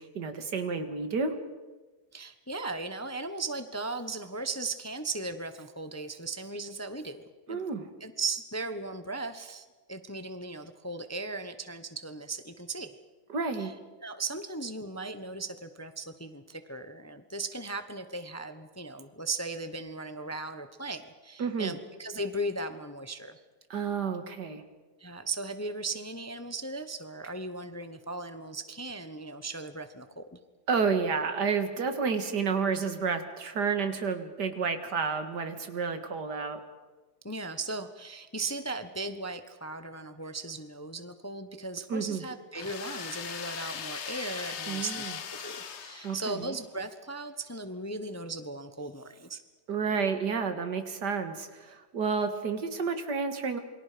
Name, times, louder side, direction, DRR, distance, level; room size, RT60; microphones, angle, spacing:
voice 1, 0.0-1.4 7.5-7.9 13.3-13.8 21.4-21.8 23.7-24.6 30.7-36.6 41.9-42.2 44.7-45.2 46.0-46.6 49.7-53.6, right 5 dB, 80° right, 8 dB, 2.4 m, -30 dB
voice 2, 2.1-7.6 8.0-13.0 13.6-13.7 14.0-23.4 25.0-30.4 37.2-45.0 45.4-49.4, right 2 dB, 10° left, 9 dB, 0.8 m, -37 dB
sound 1, 42.5-46.6, left 7 dB, 50° left, 1.1 m, -39 dB
28.0 x 23.5 x 5.1 m, 1.2 s
omnidirectional pair, 1.8 m